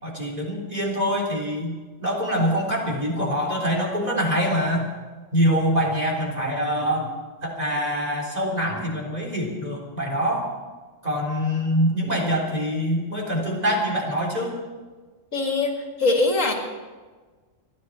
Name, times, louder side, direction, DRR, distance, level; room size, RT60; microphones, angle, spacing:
voice 1, 0.0-4.9 5.3-7.1 7.4-10.5 11.0-14.6, equal, 30° right, -2 dB, 3.8 m, -24 dB
voice 2, 15.3-16.5, left 3 dB, 70° left, 2 dB, 2.4 m, -22 dB
28.5 x 11.0 x 4.3 m, 1.4 s
omnidirectional pair, 1.4 m